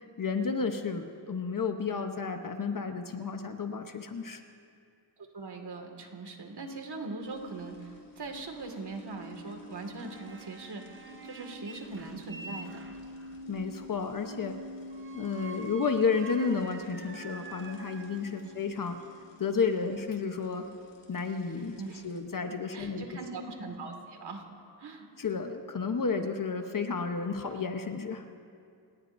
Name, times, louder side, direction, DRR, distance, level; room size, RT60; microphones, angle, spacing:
voice 1, 0.2-4.4 13.5-14.6 15.1-19.0 19.4-20.7 21.1-21.8 22.0-23.0 25.2-28.2, left 5 dB, 50° left, 6 dB, 1.0 m, -31 dB
voice 2, 5.3-13.0 21.8-22.1 22.7-24.4 24.8-25.1, right 3 dB, 65° right, 3 dB, 2.2 m, -41 dB
sound 1, 7.2-22.2, left 1 dB, 85° left, 2.5 m, -48 dB
sound 2, 10.0-13.4 14.9-18.6, right 4 dB, 30° right, 0.8 m, -47 dB
29.0 x 18.5 x 2.7 m, 2.3 s
wide cardioid pair, 150°, 43 cm